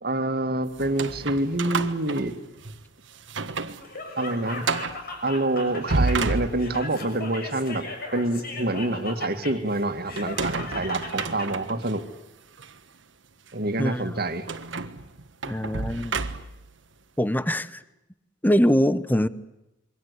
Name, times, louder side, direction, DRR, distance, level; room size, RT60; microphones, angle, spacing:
voice 1, 0.0-2.4 4.2-4.7 5.2-7.8 8.1-12.0 13.5-14.5, right 2 dB, 55° right, 2.2 m, -26 dB
sound 1, 0.7-2.8 3.2-3.8 4.1-4.2 4.6-5.0 5.7-7.0 10.2-11.9 12.6-12.7 14.5-16.7, right 3 dB, 70° right, 1.5 m, -30 dB
Laughter, 3.8-11.5, left 2 dB, 55° left, 6.7 m, -37 dB
voice 2, 13.8-14.2 15.5-16.2 17.2-17.8 18.4-19.3, equal, 10° left, 1.0 m, -23 dB
27.5 x 24.0 x 8.4 m
head